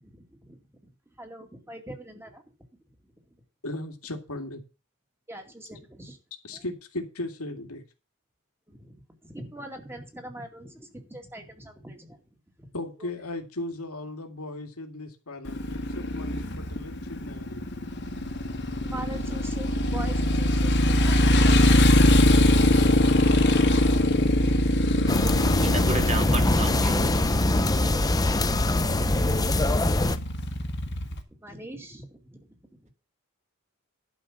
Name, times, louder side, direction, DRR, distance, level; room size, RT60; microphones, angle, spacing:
voice 1, 0.0-0.6 1.2-2.4 5.3-6.2 6.5-6.6 8.7-8.9 9.2-12.2 12.6-12.7 13.0-13.1 18.8-23.3 31.4-32.9, right 1 dB, 10° right, 2.2 m, -42 dB
voice 2, 3.6-4.6 6.4-7.8 12.7-17.6, left 2 dB, 75° left, 2.3 m, -37 dB
Motorcycle, 15.5-31.2, left 1 dB, 50° left, 1.7 m, -23 dB
sound 1, 25.1-30.2, left 2 dB, 15° left, 0.7 m, -24 dB
voice 3, 25.5-27.1, right 3 dB, 30° right, 2.1 m, -31 dB
11.5 x 5.4 x 7.1 m
head